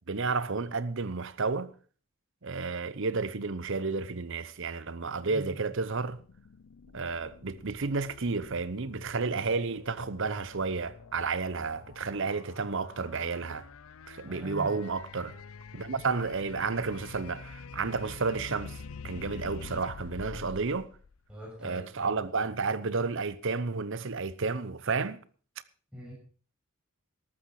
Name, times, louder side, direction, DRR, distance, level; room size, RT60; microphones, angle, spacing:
voice 1, 0.1-1.7 2.4-6.2 6.9-13.7 14.1-15.3 15.7-20.9 21.6-25.2, right 4 dB, 60° right, 0.9 m, -31 dB
voice 2, 5.1-5.5 14.2-14.8 15.9-16.0 20.1-20.6 21.3-22.3 25.9-26.1, right 1 dB, 5° right, 6.6 m, -44 dB
sound 1, 6.1-21.7, left 5 dB, 75° left, 0.5 m, -47 dB
14.0 x 12.5 x 4.8 m
head